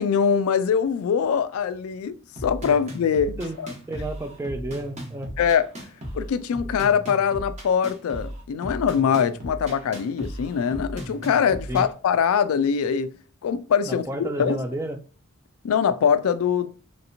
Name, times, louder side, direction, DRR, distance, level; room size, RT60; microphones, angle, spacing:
voice 1, 0.0-3.7 5.4-5.7 6.1-13.1 13.4-14.0 14.4-14.6 15.6-16.7, left 7 dB, 75° left, 0.3 m, -23 dB
sound 1, 2.4-11.9, equal, 35° right, 1.0 m, -36 dB
voice 2, 3.9-5.3 11.7-11.8 13.8-15.0, right 1 dB, 15° right, 0.3 m, -31 dB
3.1 x 2.9 x 2.5 m
head